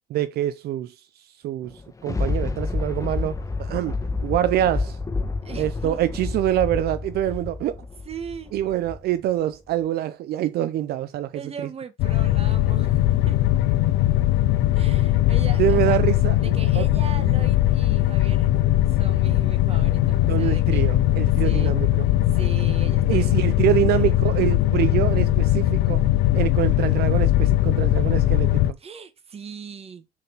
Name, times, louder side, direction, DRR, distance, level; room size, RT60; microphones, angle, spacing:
voice 1, 0.1-3.9 4.2-5.0 5.6-7.8 8.5-11.3 15.6-16.8 17.2-17.3 20.3-22.1 23.1-26.0 26.3-28.6, right 12 dB, 70° right, 0.6 m, -25 dB
Thunder, 1.6-9.2 9.7-9.8, left 3 dB, 20° left, 1.6 m, -29 dB
voice 2, 5.4-6.0 8.0-8.5 11.3-13.4 14.7-16.0 16.4-18.5 18.9-20.9 21.3-21.7 22.3-23.5 23.9-24.4 28.8-30.0, right 6 dB, 35° right, 1.6 m, -39 dB
sound 1, 12.0-28.7, left 14 dB, 85° left, 0.5 m, -20 dB
7.2 x 4.3 x 5.5 m
cardioid pair, 110°, 17 cm